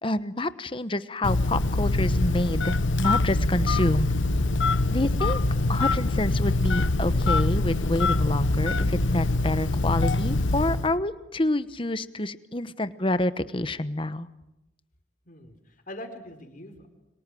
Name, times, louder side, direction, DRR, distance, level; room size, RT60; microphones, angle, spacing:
voice 1, 0.0-4.1 4.9-5.4 5.7-14.3, left 1 dB, 25° left, 13 dB, 1.0 m, -28 dB
Telephone, 1.2-10.9, left 2 dB, 85° left, 1.2 m, -24 dB
voice 2, 15.3-16.9, left 1 dB, 45° left, 7 dB, 4.3 m, -42 dB
29.5 x 24.5 x 7.7 m, 0.93 s
head